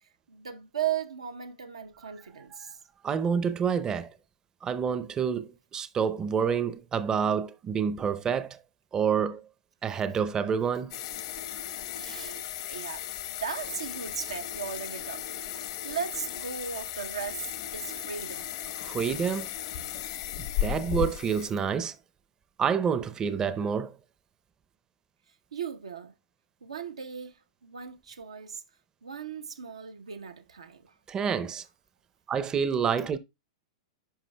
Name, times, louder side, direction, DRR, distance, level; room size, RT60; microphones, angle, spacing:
voice 1, 0.0-2.8 11.9-15.2 15.5-17.4 17.7-18.5 25.5-26.1 26.6-28.6 29.0-31.0, right 8 dB, 90° right, 0.8 m, -37 dB
voice 2, 3.0-4.1 4.6-8.6 8.9-9.4 9.8-11.0 18.8-19.5 20.4-22.0 22.6-23.9 31.1-31.6 32.3-33.2, right 7 dB, 25° right, 0.6 m, -28 dB
sound 1, 10.9-21.5, left 11 dB, 60° left, 0.9 m, -36 dB
10.0 x 5.4 x 2.2 m
hypercardioid pair, 110°, 3 cm